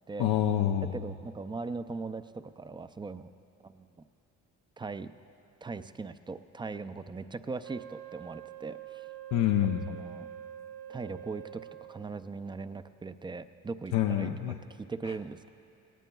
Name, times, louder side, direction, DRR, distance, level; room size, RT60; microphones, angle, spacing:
voice 1, 0.2-1.0 9.3-10.0 13.9-14.6 15.1-15.2, left 11 dB, 80° left, 3 dB, 0.6 m, -27 dB
voice 2, 0.9-3.3 3.6-3.9 4.8-5.1 5.6-9.1 9.9-10.3 10.9-14.3 14.8-15.5, right 4 dB, 15° right, 11 dB, 0.4 m, -39 dB
Wind instrument woodwind instrument, 7.6-12.2, right 11 dB, 45° right, 0.8 m, -45 dB
18.5 x 18.5 x 2.3 m, 2.8 s
cardioid pair, 90°, 30 cm